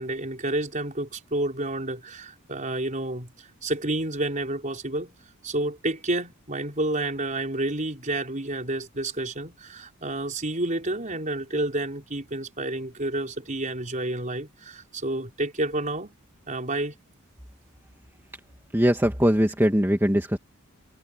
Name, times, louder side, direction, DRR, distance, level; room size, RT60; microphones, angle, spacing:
voice 1, 0.0-5.1 5.4-16.2 16.5-17.0, right 2 dB, 35° right, 5.1 m, -30 dB
voice 2, 18.7-20.4, equal, 10° right, 2.1 m, -21 dB
head